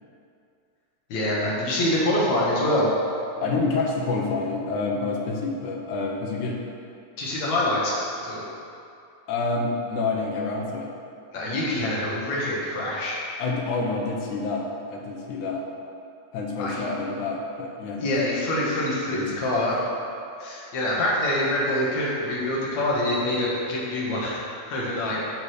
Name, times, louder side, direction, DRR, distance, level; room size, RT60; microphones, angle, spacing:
voice 1, 1.1-2.9 7.2-8.4 11.3-13.2 16.6-16.9 18.0-19.8 20.4-25.2, left 1 dB, 65° left, -6 dB, 3.0 m, -25 dB
voice 2, 3.4-6.6 9.3-10.9 13.4-15.7 16.3-18.2 19.1-19.6, left 3 dB, 90° left, 0 dB, 2.5 m, -28 dB
10.5 x 4.1 x 6.5 m, 2.6 s
omnidirectional pair, 3.4 m